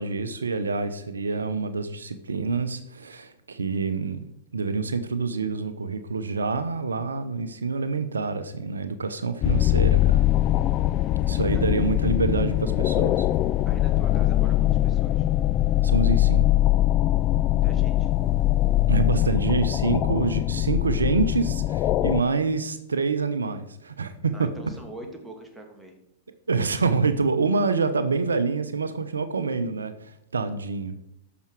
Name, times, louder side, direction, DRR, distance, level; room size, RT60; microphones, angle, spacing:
voice 1, 0.0-4.2 4.5-10.3 11.3-13.3 15.8-16.5 18.9-24.5 26.5-31.0, right 4 dB, 90° right, 10 dB, 0.8 m, -26 dB
sound 1, 9.4-22.2, left 14 dB, 35° left, 0.4 m, -22 dB
voice 2, 13.7-15.3 17.5-18.1 24.3-25.9, right 1 dB, 5° right, 2 dB, 2.2 m, -43 dB
14.0 x 6.0 x 4.6 m, 0.78 s
hypercardioid pair, 110°, 0 cm